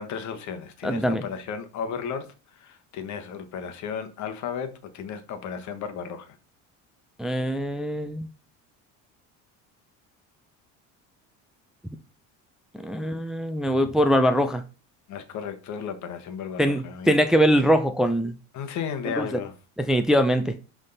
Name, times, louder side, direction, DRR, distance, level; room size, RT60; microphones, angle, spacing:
voice 1, 0.0-6.4 15.1-17.2 18.5-19.5, left 7 dB, 55° left, 1.3 m, -34 dB
voice 2, 0.8-1.2 7.2-8.3 12.7-14.6 16.6-18.3 19.1-19.3 19.8-20.5, equal, ahead, 0.5 m, -22 dB
11.0 x 3.7 x 4.0 m
cardioid pair, 135°, 35 cm